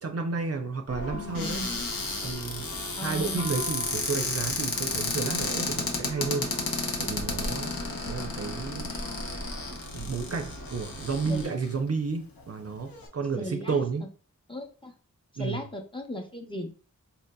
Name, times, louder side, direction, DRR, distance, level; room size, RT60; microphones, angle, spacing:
voice 1, 0.0-1.6 2.2-2.7 3.0-6.5 7.0-7.7 8.1-9.0 9.2-9.5 9.9-14.0 15.4-15.6, right 4 dB, 45° right, 0.5 m, -32 dB
Church bell, 0.9-11.4, equal, 60° left, 1.0 m, -40 dB
voice 2, 1.1-1.8 3.0-3.5 11.3-11.5 13.4-13.8 14.5-14.9 15.3-16.7, left 1 dB, 15° left, 0.7 m, -37 dB
Cupboard open or close, 1.3-11.7 12.4-12.5 12.7-13.1, left 3 dB, 90° left, 0.7 m, -33 dB
4.1 x 2.7 x 2.2 m
wide cardioid pair, 40°, 33 cm